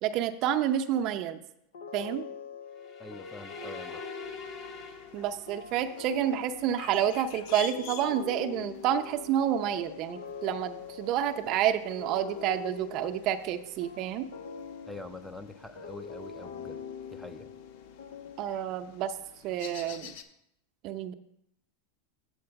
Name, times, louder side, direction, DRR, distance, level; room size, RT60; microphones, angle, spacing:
voice 1, 0.0-1.4 1.9-2.2 5.1-14.3 18.4-19.1 19.4-20.1 20.8-21.1, right 10 dB, 45° right, 7 dB, 0.6 m, -29 dB
sound 1, 1.7-18.9, left 6 dB, 85° left, 0.5 m, -44 dB
sound 2, 2.7-5.8, left 3 dB, 35° left, 1.1 m, -46 dB
voice 2, 3.0-4.0 14.9-16.8 17.1-17.5, left 2 dB, 5° left, 9 dB, 0.4 m, -45 dB
sound 3, 4.2-20.2, left 8 dB, 65° left, 0.9 m, -50 dB
7.9 x 4.4 x 6.8 m, 0.79 s
supercardioid pair, 135°, 0 cm